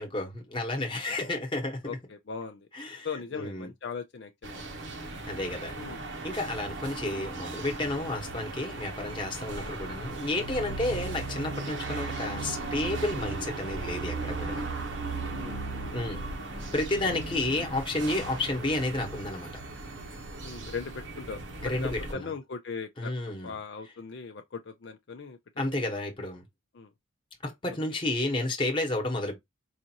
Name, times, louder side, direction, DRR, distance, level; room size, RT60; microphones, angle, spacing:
voice 1, 0.0-2.0 2.7-3.7 5.3-5.7 6.2-14.6 15.9-19.6 21.6-22.3 23.0-23.6 25.6-26.4 27.4-29.3, left 2 dB, 25° left, 1.1 m, -31 dB
voice 2, 1.9-2.7 3.0-4.6 5.7-6.0 9.4-9.6 10.9-11.0 15.3-15.9 20.4-23.1 23.4-25.4 26.7-26.9, left 5 dB, 55° left, 0.4 m, -39 dB
sound 1, 4.4-22.1, right 3 dB, 55° right, 0.9 m, -37 dB
4.9 x 2.5 x 2.8 m
head